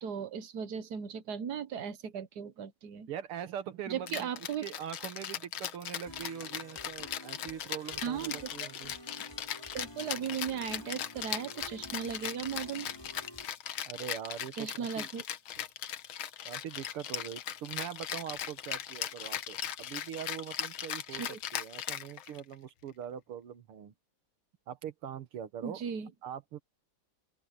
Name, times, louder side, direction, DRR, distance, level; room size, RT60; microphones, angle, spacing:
voice 1, 0.0-3.1 3.9-4.7 8.0-8.7 9.7-12.9 14.6-15.2 21.1-21.4 25.6-26.1, right 7 dB, 55° right, 1.4 m, -37 dB
voice 2, 3.1-4.3 4.6-9.0 13.9-15.1 16.5-23.9 24.7-25.8 26.2-26.6, right 9 dB, 85° right, 2.3 m, -42 dB
Rattle (instrument), 4.1-22.5, left 10 dB, 75° left, 1.9 m, -39 dB
sound 1, 6.1-13.5, equal, 10° left, 5.2 m, -50 dB
open air
omnidirectional pair, 2.4 m